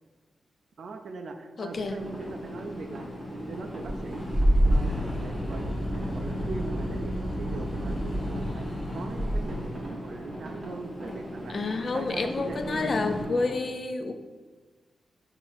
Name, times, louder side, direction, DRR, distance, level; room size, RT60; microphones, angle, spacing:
voice 1, 0.8-4.4 4.7-11.6 11.9-13.0, right 3 dB, 60° right, 5 dB, 0.3 m, -40 dB
voice 2, 1.6-2.0 11.5-14.1, left 3 dB, 45° left, 7 dB, 0.3 m, -29 dB
sound 1, 1.7-13.2, equal, 30° left, 1.1 m, -30 dB
sound 2, 2.0-13.5, equal, 35° right, 1.2 m, -42 dB
6.5 x 2.5 x 2.5 m, 1.3 s
wide cardioid pair, 125°, 0 cm